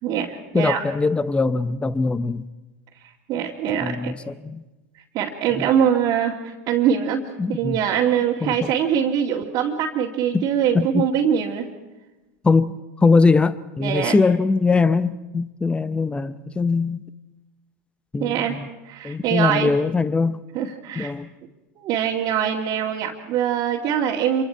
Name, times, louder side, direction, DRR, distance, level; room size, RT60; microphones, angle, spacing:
voice 1, 0.0-0.8 3.3-4.1 5.1-11.7 13.8-14.2 18.2-18.5 18.9-19.7 20.5-21.1 21.8-24.4, right 8 dB, 50° right, -4 dB, 2.3 m, -23 dB
voice 2, 0.5-2.4 3.8-4.6 5.5-5.7 7.4-7.8 8.4-8.7 10.3-10.5 10.7-11.1 12.4-17.0 18.1-18.7 19.0-20.4 21.0-21.3, left 4 dB, 15° left, 14 dB, 0.7 m, -21 dB
26.5 x 24.0 x 4.6 m, 1.1 s
supercardioid pair, 105°, 8 cm